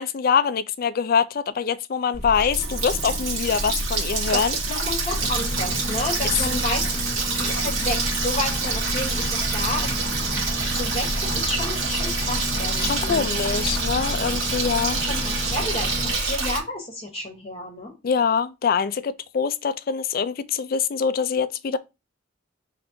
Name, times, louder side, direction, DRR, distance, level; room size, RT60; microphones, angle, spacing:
voice 1, 0.0-4.6 12.8-15.0 18.0-21.8, left 6 dB, 45° left, 0.4 m, -24 dB
Water tap faucet, 2.1-16.6, right 3 dB, 80° right, 1.5 m, -26 dB
voice 2, 4.3-9.9 10.7-13.4 14.6-17.9, left 1 dB, 30° left, 1.1 m, -31 dB
Boat Water vehicle, 5.1-16.1, left 1 dB, 45° right, 0.8 m, -34 dB
5.8 x 3.3 x 2.6 m
head